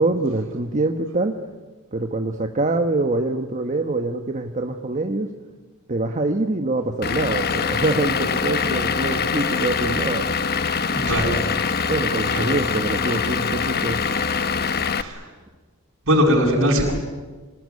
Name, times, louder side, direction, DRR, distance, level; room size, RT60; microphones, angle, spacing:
voice 1, 0.0-1.3 1.9-5.3 5.9-10.3 11.9-14.0, right 2 dB, 35° right, 4 dB, 1.3 m, -24 dB
Vehicle / Engine, 7.0-15.0, left 5 dB, 45° left, 1.1 m, -24 dB
voice 2, 10.9-11.3 12.3-12.5 15.0-15.2 16.1-16.9, equal, 60° right, -2 dB, 7.9 m, -20 dB
27.0 x 19.5 x 9.7 m, 1.3 s
head